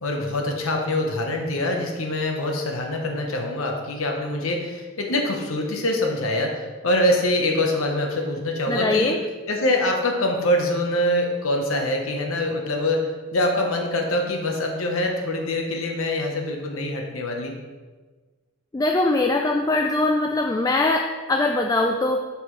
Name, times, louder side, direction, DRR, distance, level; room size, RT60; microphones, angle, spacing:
voice 1, 0.0-9.2 9.5-17.6, left 1 dB, 80° left, 2 dB, 1.0 m, -24 dB
voice 2, 8.7-9.2 18.7-22.2, left 2 dB, 15° left, 3 dB, 0.3 m, -22 dB
7.8 x 5.8 x 3.2 m, 1.3 s
head